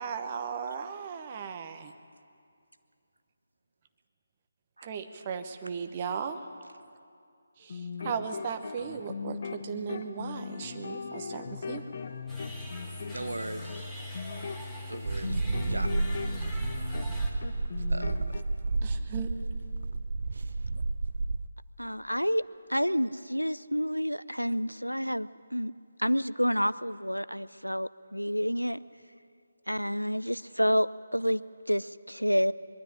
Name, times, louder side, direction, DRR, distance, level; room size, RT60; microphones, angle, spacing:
voice 1, 0.0-1.9 4.8-6.4 7.6-11.8 18.8-19.3, right 6 dB, 25° right, 8 dB, 1.1 m, -36 dB
sound 1, 7.6-17.2 17.4-18.4, left 5 dB, 40° left, 1.1 m, -39 dB
sound 2, 12.3-17.3, left 1 dB, 5° right, 2.0 m, -41 dB
voice 2, 13.1-13.9 14.9-16.1 17.9-18.4, right 2 dB, 70° right, 10 dB, 1.1 m, -39 dB
sound 3, 15.0-21.5, right 3 dB, 50° right, 0.7 m, -31 dB
voice 3, 21.8-22.4 22.7-25.7 26.0-28.8 29.7-31.4 31.7-32.5, equal, 90° left, 17 dB, 0.5 m, -29 dB
22.0 x 12.5 x 9.8 m, 2.4 s
figure-of-eight pair, 150°, 0 cm